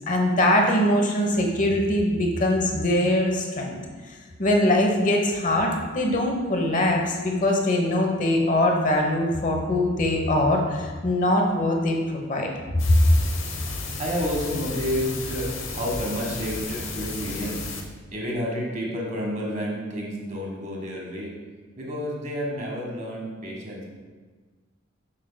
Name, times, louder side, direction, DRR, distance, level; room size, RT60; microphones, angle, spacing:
voice 1, 0.1-3.8 4.4-12.5 12.7-12.8, left 1 dB, 40° left, 2 dB, 0.9 m, -22 dB
sound 1, 12.8-17.8, left 3 dB, 85° left, 0.9 m, -33 dB
voice 2, 14.0-17.6 18.1-21.3 21.8-23.8, equal, 40° right, -2 dB, 1.4 m, -30 dB
7.4 x 6.3 x 2.2 m, 1.4 s
head